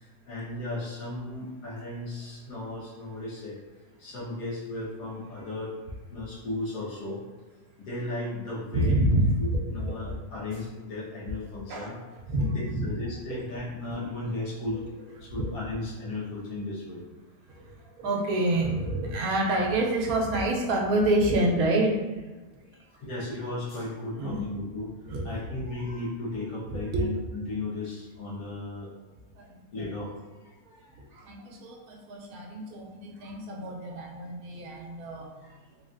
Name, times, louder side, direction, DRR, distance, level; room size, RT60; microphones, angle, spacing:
voice 1, 0.0-3.6 4.0-5.7 6.1-7.2 7.8-9.0 9.4-12.0 12.5-17.0 17.8-17.9 22.7-24.9 25.2-28.9 29.7-30.1 30.4-31.0, left 2 dB, 80° left, -7 dB, 1.5 m, -35 dB
voice 2, 8.7-9.6 10.1-10.2 11.7-11.9 12.3-12.9 15.2-15.5 17.5-22.2 24.2-24.4 25.1-25.3 25.6-25.7 26.7-27.1 29.3-29.8 30.7-35.3, right 1 dB, 80° right, -1 dB, 1.1 m, -28 dB
3.4 x 2.4 x 2.5 m, 1.3 s
omnidirectional pair, 1.5 m